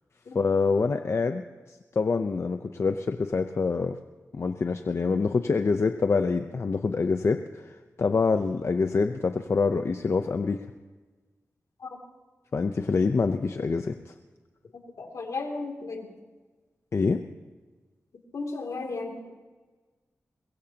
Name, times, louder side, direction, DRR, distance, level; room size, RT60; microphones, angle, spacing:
voice 1, 0.3-4.0 4.3-7.6 8.0-10.6 12.5-14.1 16.9-17.2, left 4 dB, 55° left, 7 dB, 0.7 m, -26 dB
voice 2, 14.7-16.1 18.3-19.3, left 3 dB, 80° left, 2 dB, 2.8 m, -35 dB
22.5 x 21.5 x 2.9 m, 1.3 s
cardioid pair, 65°, 5 cm